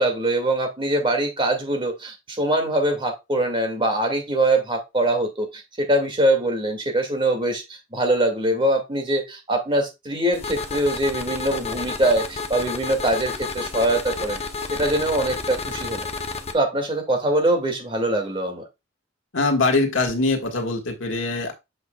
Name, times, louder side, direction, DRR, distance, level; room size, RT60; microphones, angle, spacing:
voice 1, 0.0-14.4 14.7-16.1 16.5-18.6, right 1 dB, 25° right, 3 dB, 2.1 m, -23 dB
sound 1, 10.3-16.5, left 4 dB, 35° left, 0.8 m, -31 dB
voice 2, 19.3-21.5, left 3 dB, 85° left, 3 dB, 1.7 m, -22 dB
7.8 x 6.1 x 2.3 m, 0.22 s
head